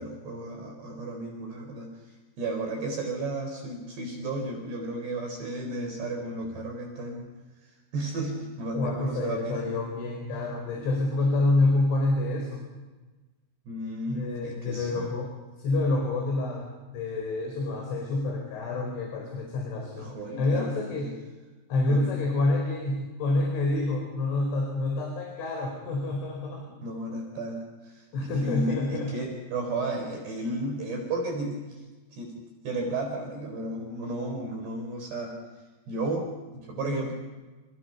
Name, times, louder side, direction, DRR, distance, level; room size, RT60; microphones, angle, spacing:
voice 1, 0.0-1.9 2.4-7.3 7.9-9.8 13.7-15.1 20.0-21.1 21.9-22.0 26.8-31.8 32.1-32.3 32.6-35.4 35.9-37.1, right 2 dB, 55° right, 2 dB, 6.0 m, -33 dB
voice 2, 8.7-12.7 14.1-15.3 15.6-16.7 16.9-21.1 21.7-26.6 28.1-29.1, left 2 dB, 65° left, 1 dB, 7.1 m, -27 dB
29.0 x 29.0 x 5.8 m, 1.2 s
omnidirectional pair, 5.9 m